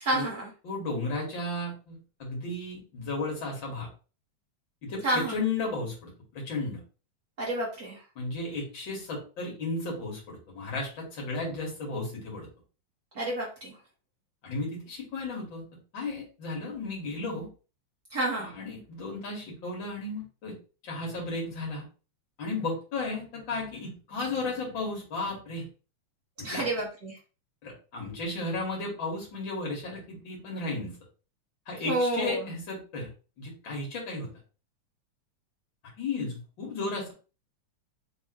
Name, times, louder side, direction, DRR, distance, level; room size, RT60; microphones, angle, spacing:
voice 1, 0.0-0.5 5.0-5.4 7.4-8.0 13.1-13.7 18.1-18.5 26.4-27.2 31.8-32.4, right 1 dB, 65° right, -4 dB, 0.9 m, -29 dB
voice 2, 0.6-3.9 4.8-6.8 8.2-12.5 14.4-15.6 15.9-17.5 18.4-20.5 20.8-21.8 22.4-25.7 26.4-26.6 27.6-30.9 31.7-33.1 33.4-34.3 36.0-37.1, left 2 dB, 45° left, -2 dB, 2.3 m, -34 dB
5.1 x 3.4 x 3.0 m, 0.35 s
omnidirectional pair, 3.3 m